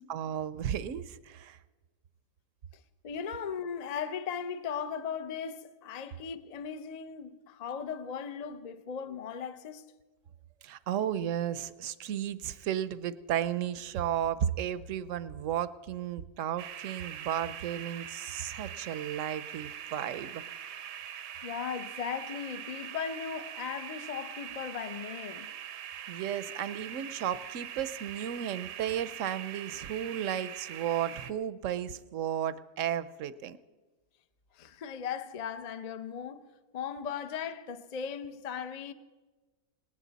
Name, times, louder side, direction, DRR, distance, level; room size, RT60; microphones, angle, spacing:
voice 1, 0.1-1.6 10.6-20.4 26.1-33.6, right 10 dB, 65° right, 0.9 m, -34 dB
voice 2, 3.0-9.8 21.4-25.5 34.5-36.5 36.7-38.9, left 7 dB, 45° left, 0.5 m, -37 dB
sound 1, 16.6-31.3, right 9 dB, 85° right, 1.3 m, -43 dB
19.0 x 18.5 x 4.1 m
omnidirectional pair, 1.7 m